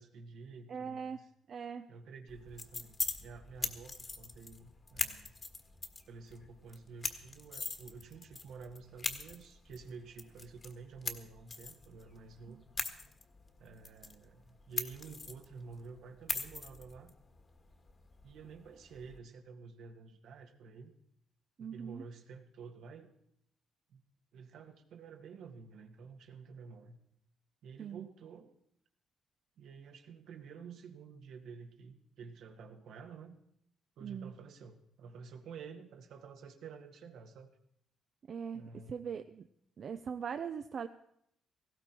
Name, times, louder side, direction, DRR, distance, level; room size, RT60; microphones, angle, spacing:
voice 1, 0.0-1.3 1.9-5.4 6.1-12.6 13.6-17.1 18.2-20.9 21.6-23.1 23.9-24.0 24.3-27.0 27.6-28.5 29.6-33.4 34.0-37.5 38.5-39.2, right 5 dB, 75° right, 4 dB, 1.8 m, -50 dB
voice 2, 0.7-1.2 1.5-1.9 12.5-12.6 21.6-22.0 27.8-28.1 34.0-34.3 38.3-39.4 39.8-40.9, right 7 dB, 55° right, 8 dB, 0.6 m, -41 dB
sound 1, 2.3-19.2, left 3 dB, 35° left, 1.6 m, -43 dB
18.0 x 15.5 x 4.5 m, 0.73 s
cardioid pair, 90°, 0 cm